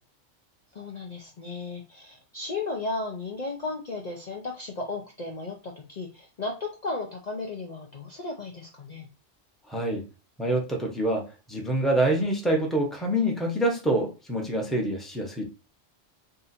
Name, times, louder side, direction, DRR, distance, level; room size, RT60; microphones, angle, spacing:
voice 1, 0.7-9.1, left 3 dB, 40° left, -1 dB, 0.7 m, -35 dB
voice 2, 9.7-10.0 10.4-15.4, right 1 dB, ahead, 1 dB, 0.9 m, -26 dB
3.8 x 2.6 x 4.3 m, 0.31 s
omnidirectional pair, 1.2 m